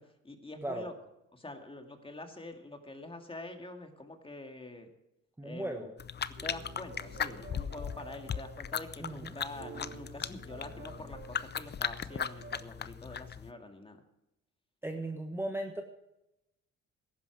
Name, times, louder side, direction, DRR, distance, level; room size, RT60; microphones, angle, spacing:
voice 1, 0.2-0.9 1.3-4.9 5.4-5.9 6.4-14.0, left 2 dB, 20° left, 5 dB, 2.2 m, -46 dB
voice 2, 5.4-5.9 9.0-9.4 14.8-15.8, right 1 dB, 10° right, 3 dB, 1.3 m, -37 dB
sound 1, 6.0-13.5, left 7 dB, 35° left, 0.6 m, -38 dB
sound 2, 6.4-9.0 9.4-12.7, right 7 dB, 40° right, 1.6 m, -51 dB
14.5 x 11.5 x 4.7 m, 0.89 s
cardioid pair, 90°, 30 cm